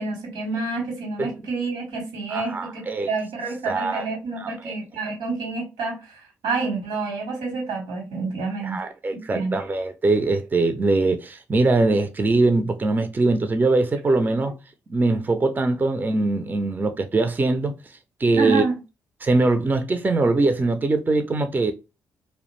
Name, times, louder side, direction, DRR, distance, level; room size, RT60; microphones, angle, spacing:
voice 1, 0.0-8.8 9.1-9.6 18.4-18.7, right 3 dB, 75° right, 1.0 m, -28 dB
voice 2, 2.3-3.1 3.7-4.1 4.4-4.7 5.1-5.2 8.6-14.5 14.9-17.7 18.2-18.6 19.2-21.7, right 3 dB, 25° right, 0.4 m, -22 dB
2.4 x 2.1 x 3.0 m
hypercardioid pair, 40°, 8 cm